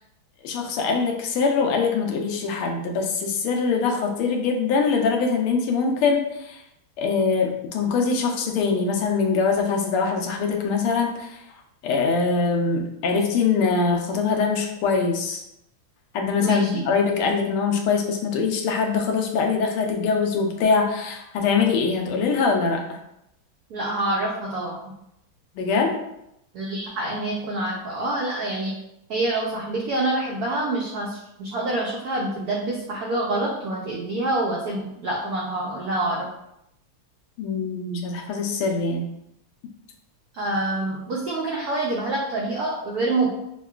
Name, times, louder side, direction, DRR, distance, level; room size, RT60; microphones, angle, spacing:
voice 1, 0.4-6.6 7.0-11.4 11.8-15.4 16.1-22.8 25.5-26.0 37.4-39.1, left 5 dB, 85° left, 2 dB, 1.5 m, -23 dB
voice 2, 16.4-16.7 23.7-24.8 26.5-28.7 29.1-36.3 40.3-43.3, right 2 dB, 90° right, -2 dB, 0.8 m, -26 dB
5.5 x 2.2 x 2.3 m, 0.82 s
omnidirectional pair, 2.3 m